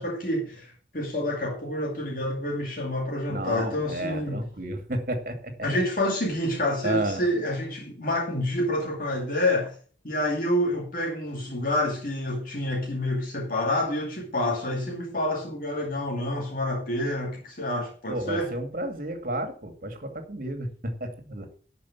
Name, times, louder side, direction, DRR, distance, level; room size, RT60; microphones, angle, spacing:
voice 1, 0.0-4.4 5.6-9.8 10.0-18.5, left 1 dB, 50° left, 2.4 m, -28 dB
voice 2, 3.3-5.5 6.8-7.2 18.1-21.5, right 1 dB, 50° right, 2.2 m, -31 dB
12.0 x 5.5 x 7.0 m
head